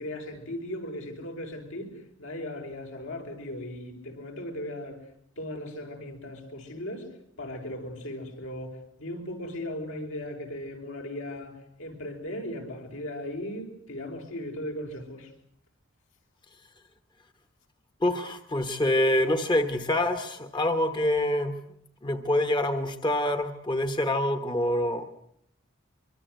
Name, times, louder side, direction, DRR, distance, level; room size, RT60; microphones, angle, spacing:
voice 1, 0.0-5.0 5.4-7.1 7.4-15.3, left 1 dB, 80° left, 5.6 m, -37 dB
voice 2, 18.0-21.6 22.0-25.1, left 1 dB, 20° left, 1.2 m, -26 dB
24.5 x 24.0 x 8.0 m
head